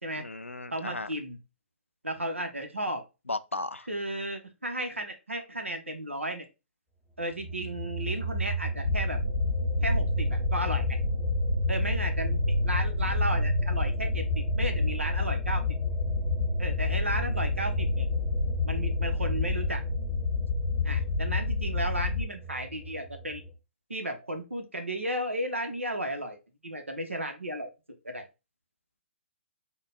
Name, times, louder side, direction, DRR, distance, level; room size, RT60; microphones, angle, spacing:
voice 1, 0.2-1.1 3.3-3.9, left 2 dB, 85° left, 0.4 m, -35 dB
voice 2, 0.7-1.4 2.0-3.0 3.9-6.5 7.2-9.2 9.8-11.0 11.7-15.6 16.6-18.1 18.6-19.8 20.8-23.4 23.9-27.7 28.0-28.3, right 1 dB, 85° right, 1.0 m, -34 dB
sound 1, 7.4-23.5, right 1 dB, 5° left, 0.8 m, -33 dB
sound 2, 8.8-22.2, left 4 dB, 70° left, 0.8 m, -29 dB
3.7 x 2.3 x 3.6 m
figure-of-eight pair, 125°, 7 cm